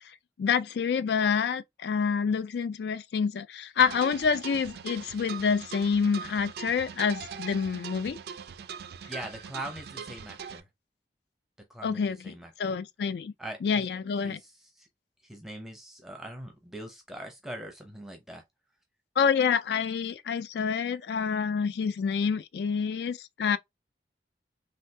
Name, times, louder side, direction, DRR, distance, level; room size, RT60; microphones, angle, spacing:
voice 1, 0.4-8.2 11.8-13.3 13.6-14.4 19.2-23.6, left 6 dB, 70° left, 0.3 m, -27 dB
sound 1, 3.8-10.6, right 7 dB, 65° right, 0.3 m, -41 dB
voice 2, 9.1-10.7 11.7-12.8 13.4-13.9 14.2-14.9 15.2-18.4, right 1 dB, ahead, 0.5 m, -42 dB
3.4 x 2.3 x 2.6 m
head